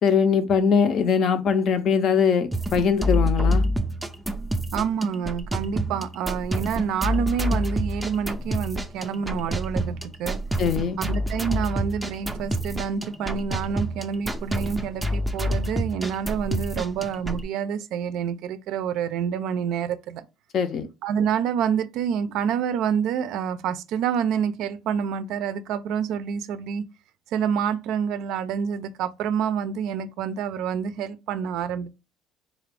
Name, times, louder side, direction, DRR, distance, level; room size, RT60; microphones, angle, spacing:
voice 1, 0.0-3.7 10.6-11.0 20.5-20.9, left 6 dB, 45° left, 0.5 m, -21 dB
sound 1, 2.5-17.4, equal, 5° right, 0.4 m, -28 dB
voice 2, 4.7-10.4 11.0-20.3 21.0-26.8 27.3-31.9, right 7 dB, 65° right, 0.4 m, -27 dB
3.8 x 2.4 x 3.3 m
cardioid pair, 140°, 0 cm